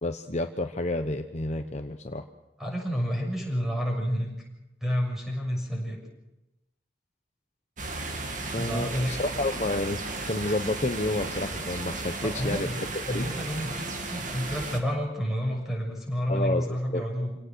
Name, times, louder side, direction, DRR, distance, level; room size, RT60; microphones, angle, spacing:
voice 1, 0.0-2.2 8.5-12.7 13.1-13.3 16.3-17.0, left 2 dB, 40° left, 6 dB, 1.0 m, -30 dB
voice 2, 2.6-4.3 4.8-6.0 8.6-9.1 12.2-12.8 13.1-17.4, equal, ahead, 0 dB, 6.8 m, -29 dB
sound 1, 7.8-14.8, right 3 dB, 45° right, 2.5 m, -35 dB
27.5 x 18.0 x 6.4 m, 0.94 s
head